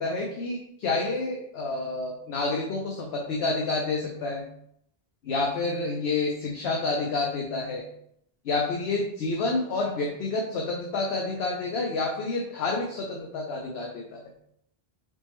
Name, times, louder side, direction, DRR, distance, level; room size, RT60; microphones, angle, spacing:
voice 1, 0.0-4.4 5.2-7.9 8.4-14.2, left 3 dB, 75° left, 0 dB, 0.9 m, -29 dB
4.1 x 3.6 x 3.0 m, 0.73 s
omnidirectional pair, 1.1 m